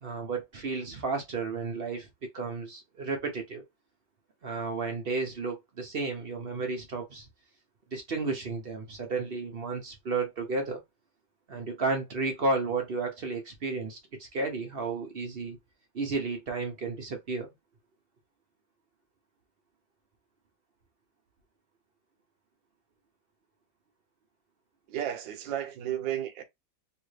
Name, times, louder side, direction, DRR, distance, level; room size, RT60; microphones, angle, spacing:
voice 1, 0.0-2.1 2.3-3.6 4.4-7.3 7.9-10.8 11.5-15.6 15.9-17.5, right 3 dB, 60° right, 0.6 m, -32 dB
voice 2, 24.9-26.4, right 11 dB, 75° right, 1.4 m, -33 dB
3.4 x 2.6 x 3.2 m
omnidirectional pair, 2.1 m